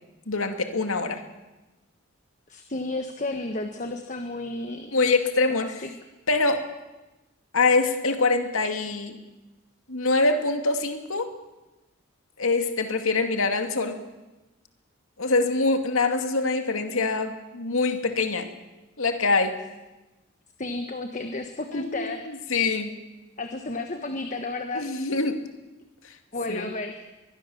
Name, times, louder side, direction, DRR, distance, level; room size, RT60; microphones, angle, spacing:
voice 1, 0.3-1.2 4.9-5.9 6.3-6.7 7.5-9.2 9.9-11.3 12.4-14.0 15.2-18.5 19.0-19.6 21.7-23.0 24.7-25.4 26.0-26.1 26.5-26.7, left 3 dB, 85° left, 6 dB, 2.4 m, -24 dB
voice 2, 2.5-4.9 5.5-5.9 20.6-22.3 23.4-24.8 26.3-27.0, left 2 dB, 35° left, 6 dB, 1.4 m, -32 dB
23.5 x 21.5 x 7.2 m, 1.1 s
head